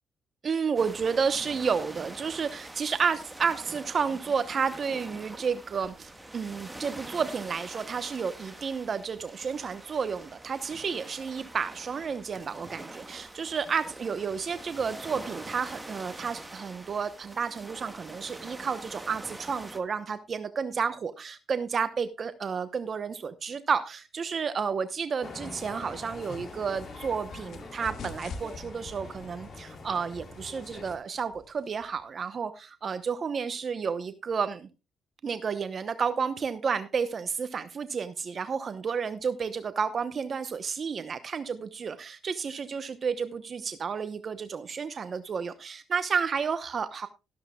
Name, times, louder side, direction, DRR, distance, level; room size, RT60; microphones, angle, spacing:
voice 1, 0.4-34.7 35.2-47.1, right 6 dB, 45° right, 11 dB, 0.8 m, -31 dB
sound 1, 0.7-19.8, right 1 dB, 10° right, 1.4 m, -45 dB
sound 2, 25.2-31.0, left 3 dB, 45° left, 3.3 m, -44 dB
sound 3, 25.9-32.0, left 4 dB, 65° left, 1.6 m, -46 dB
13.5 x 13.0 x 2.3 m, 0.27 s
cardioid pair, 90°, 0 cm